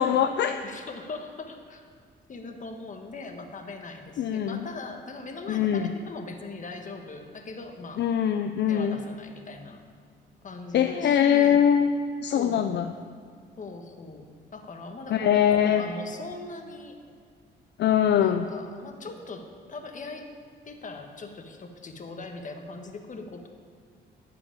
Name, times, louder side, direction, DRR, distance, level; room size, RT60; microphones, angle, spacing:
voice 1, 0.0-0.6 4.2-4.7 5.5-5.9 8.0-9.0 10.7-12.9 15.1-15.8 17.8-18.5, left 9 dB, 60° left, 8 dB, 0.5 m, -22 dB
voice 2, 0.6-1.9 2.3-8.0 8.7-9.8 10.4-11.6 12.3-12.6 13.6-14.3 14.5-17.0 18.2-20.3 20.6-23.5, left 3 dB, 40° left, 4 dB, 1.4 m, -40 dB
12.5 x 5.1 x 8.6 m, 2.1 s
cardioid pair, 90°, 20 cm